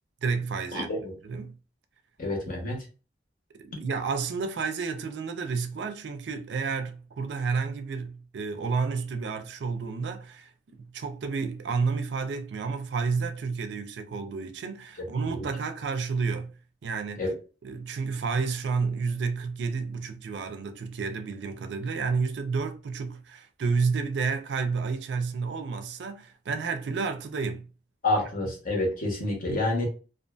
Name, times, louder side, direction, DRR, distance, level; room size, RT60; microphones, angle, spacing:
voice 1, 0.2-0.9 1.2-1.6 3.6-16.5 16.8-17.2 17.6-27.7, right 5 dB, 75° right, 0.4 m, -30 dB
voice 2, 0.7-1.1 2.2-2.8 15.3-15.5 17.1-17.4 28.0-29.8, left 2 dB, 50° left, 0.9 m, -28 dB
2.5 x 2.4 x 2.3 m
head